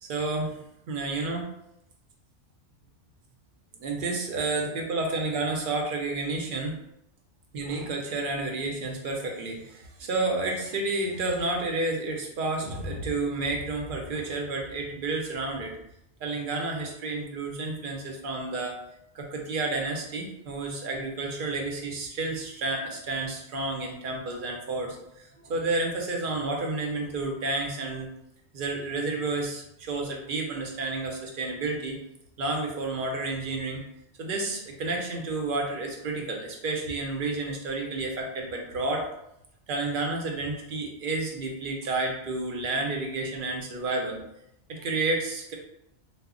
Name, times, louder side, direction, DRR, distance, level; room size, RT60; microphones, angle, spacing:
voice 1, 0.0-1.5 3.7-6.8 7.5-15.7 16.2-18.8 19.1-28.1 28.5-32.0 32.4-33.8 34.2-39.1 39.7-44.2 44.7-45.5, right 2 dB, 60° right, 1 dB, 0.6 m, -30 dB
2.0 x 2.0 x 3.6 m, 0.81 s
omnidirectional pair, 1.2 m